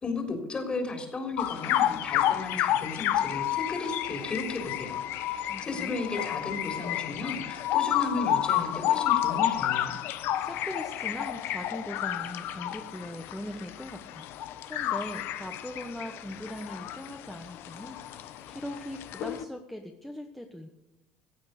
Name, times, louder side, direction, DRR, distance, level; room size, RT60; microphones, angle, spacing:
voice 1, 0.0-5.0 5.3-10.0, left 3 dB, 25° left, 4 dB, 3.7 m, -34 dB
sound 1, 1.4-19.4, left 12 dB, 70° left, 1.0 m, -30 dB
voice 2, 5.5-6.0 10.4-14.3 14.7-20.7, left 1 dB, 5° left, 3 dB, 1.2 m, -40 dB
15.5 x 8.8 x 6.7 m, 0.95 s
cardioid pair, 110°, 4 cm